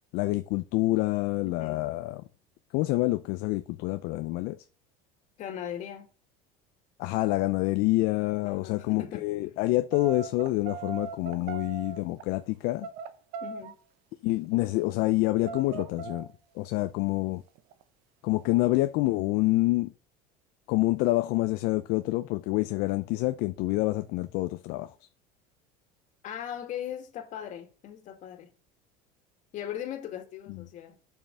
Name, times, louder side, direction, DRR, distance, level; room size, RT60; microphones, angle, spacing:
voice 1, 0.1-2.2 2.7-4.6 7.0-12.9 14.2-16.3 16.6-17.4 18.2-19.9 20.7-24.9, left 19 dB, 65° left, 0.6 m, -27 dB
voice 2, 1.4-1.8 5.4-6.1 8.4-9.3 13.4-13.8 26.2-28.5 29.5-31.0, left 10 dB, 45° left, 2.3 m, -39 dB
sound 1, 9.9-12.3 12.8-13.7 14.1-14.2 14.4-15.2 15.4-16.3 16.7-16.9 17.5-17.8 18.4-18.7, right 6 dB, 65° right, 1.1 m, -39 dB
7.3 x 5.8 x 6.4 m
cardioid pair, 130°, 17 cm